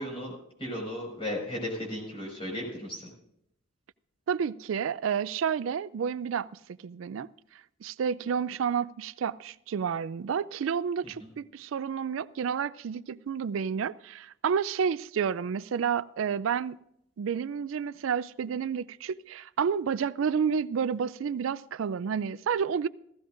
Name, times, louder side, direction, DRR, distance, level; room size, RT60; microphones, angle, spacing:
voice 1, 0.0-3.1 11.2-11.3, left 1 dB, 30° left, 5.2 m, -35 dB
voice 2, 4.3-6.5 6.8-7.3 7.8-16.8 17.2-22.9, right 7 dB, 80° right, 0.4 m, -30 dB
16.0 x 15.0 x 2.5 m
head